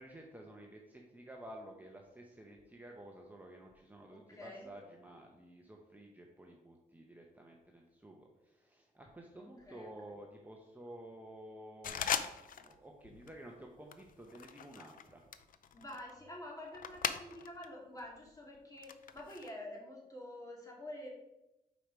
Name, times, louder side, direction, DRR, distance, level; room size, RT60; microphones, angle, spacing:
voice 1, 0.0-12.2 12.6-15.2, right 1 dB, 10° right, 0 dB, 0.9 m, -52 dB
voice 2, 4.1-4.7 9.3-9.9 15.7-21.1, left 1 dB, 20° left, -2 dB, 2.2 m, -48 dB
sound 1, 11.8-12.8 13.0-13.4 13.9-17.7 18.0-19.5, left 8 dB, 65° left, 0.5 m, -40 dB
5.2 x 4.9 x 4.6 m, 0.93 s
cardioid pair, 90°, 16 cm